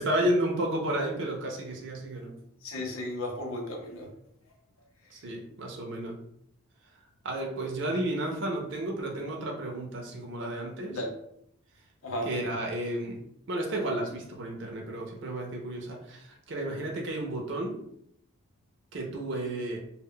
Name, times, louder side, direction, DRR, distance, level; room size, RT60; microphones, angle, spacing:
voice 1, 0.0-2.3 5.1-6.2 7.2-11.0 12.2-13.2 13.5-17.8 18.9-19.8, right 1 dB, 55° right, 0 dB, 0.5 m, -32 dB
voice 2, 2.3-4.1 10.9-11.1 12.0-12.3, left 1 dB, 80° left, 1 dB, 0.6 m, -35 dB
2.1 x 2.1 x 3.7 m, 0.73 s
head